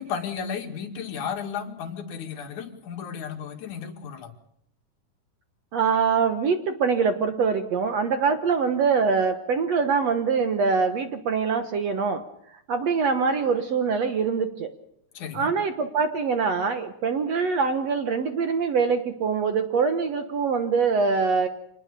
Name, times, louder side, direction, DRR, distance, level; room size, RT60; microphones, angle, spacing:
voice 1, 0.0-4.3 15.1-15.5, left 7 dB, 55° left, 4 dB, 3.3 m, -34 dB
voice 2, 5.7-12.3 12.7-14.7 15.3-21.5, right 5 dB, 65° right, 8 dB, 1.7 m, -24 dB
26.5 x 20.0 x 6.8 m, 0.72 s
omnidirectional pair, 4.6 m